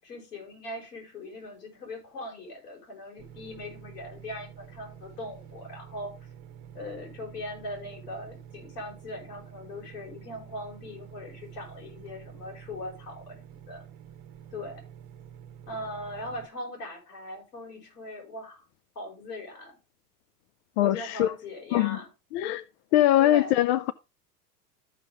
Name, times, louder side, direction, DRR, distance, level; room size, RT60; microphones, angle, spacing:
voice 1, 0.0-6.2 6.7-13.8 14.5-14.8 15.7-18.6 19.0-19.8 20.8-22.1 23.2-23.5, left 1 dB, 80° left, 5.7 m, -40 dB
sound 1, 3.2-16.5, right 9 dB, 45° right, 1.1 m, -48 dB
voice 2, 20.8-21.3 21.7-22.0 22.3-22.6 22.9-23.9, left 13 dB, 45° left, 0.6 m, -22 dB
13.5 x 5.5 x 3.5 m
hypercardioid pair, 95°, 47 cm